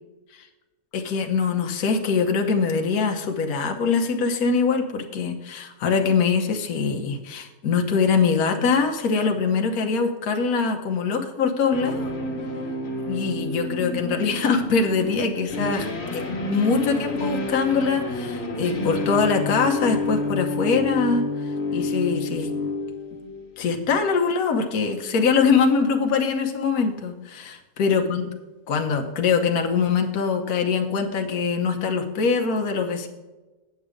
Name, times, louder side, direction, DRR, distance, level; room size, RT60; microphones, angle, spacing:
voice 1, 0.9-12.1 13.0-15.9 16.1-22.5 23.6-28.3 28.7-33.1, left 5 dB, 65° left, 4 dB, 1.4 m, -23 dB
sound 1, 11.7-23.6, left 2 dB, 40° left, 1.5 m, -29 dB
8.3 x 7.9 x 5.0 m, 1.1 s
omnidirectional pair, 1.7 m